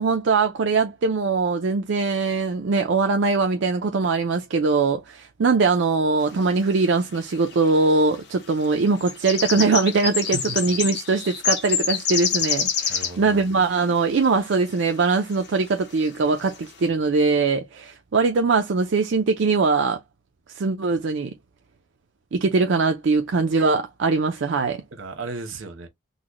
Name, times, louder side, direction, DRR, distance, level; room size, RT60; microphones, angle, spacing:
voice 1, 0.0-20.0 20.6-21.3 22.3-24.8, right 4 dB, 60° right, 0.4 m, -21 dB
sound 1, 6.8-6.9 7.1-7.8 8.6-13.3 14.2-14.3 14.8-14.9 15.3-15.6 16.0-16.1 16.4-16.6, left 7 dB, 55° left, 1.0 m, -26 dB
voice 2, 12.9-13.4 24.9-25.9, right 3 dB, 75° right, 0.9 m, -35 dB
3.9 x 2.1 x 2.9 m
head